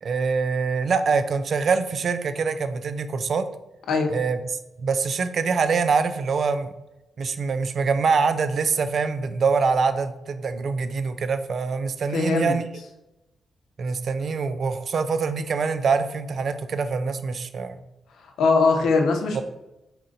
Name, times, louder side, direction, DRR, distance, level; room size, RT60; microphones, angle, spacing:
voice 1, 0.0-3.5 4.1-4.4 4.8-6.7 7.2-12.6 13.8-17.8 19.3-19.4, right 5 dB, 50° right, 10 dB, 0.3 m, -24 dB
voice 2, 12.1-12.6 18.2-19.4, left 4 dB, 85° left, 3 dB, 0.7 m, -21 dB
4.2 x 2.5 x 3.8 m, 0.94 s
wide cardioid pair, 140°, 0 cm